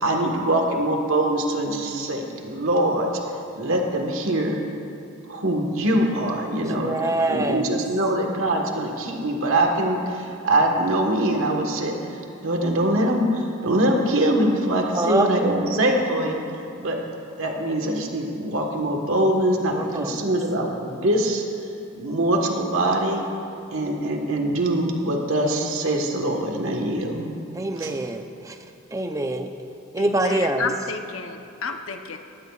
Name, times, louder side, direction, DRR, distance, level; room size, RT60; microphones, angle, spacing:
voice 1, 0.0-3.1 3.5-4.6 5.3-6.9 7.2-16.4 16.8-17.0 17.4-21.4 21.9-23.2 23.7-27.3 27.8-27.9, right 1 dB, 75° right, 1 dB, 1.4 m, -23 dB
voice 2, 6.6-7.6 14.9-15.5 19.7-20.2 27.6-28.5 28.9-29.5 29.9-30.7, right 2 dB, 15° right, 6 dB, 0.6 m, -25 dB
voice 3, 30.0-32.2, left 4 dB, 75° left, 5 dB, 0.8 m, -31 dB
20.0 x 16.0 x 2.4 m, 2.6 s
head